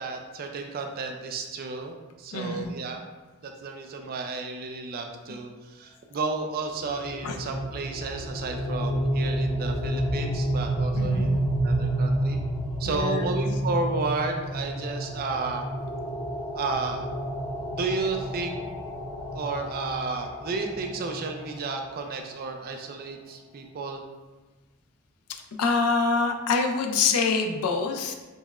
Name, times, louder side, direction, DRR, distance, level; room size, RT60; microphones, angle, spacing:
voice 1, 0.0-3.0 3.4-11.3 11.6-12.4 12.8-15.7 16.5-17.1 17.7-18.6 19.3-24.0, right 3 dB, 45° right, 4 dB, 0.3 m, -32 dB
voice 2, 2.3-2.8 7.2-7.4 11.0-11.4 12.9-13.3 25.3-28.1, left 4 dB, 85° left, 5 dB, 0.4 m, -26 dB
sound 1, 6.9-21.8, right 1 dB, 25° left, 0.6 m, -30 dB
5.3 x 2.1 x 2.3 m, 1.2 s
head